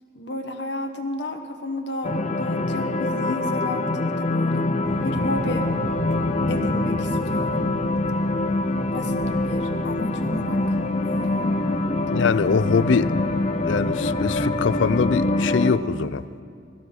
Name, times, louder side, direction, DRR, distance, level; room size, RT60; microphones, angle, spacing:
voice 1, 0.1-4.7 5.0-5.7 6.5-7.7 8.9-9.2 9.4-10.7 11.0-11.6, left 1 dB, 65° left, 5 dB, 1.2 m, -32 dB
sound 1, 2.0-15.8, left 2 dB, 40° left, 0.6 m, -24 dB
sound 2, 4.8-15.3, right 1 dB, 60° right, 1.5 m, -36 dB
voice 2, 12.1-13.1 13.6-16.4, left 5 dB, 85° left, 15 dB, 0.4 m, -23 dB
19.5 x 14.0 x 3.9 m, 2.2 s
head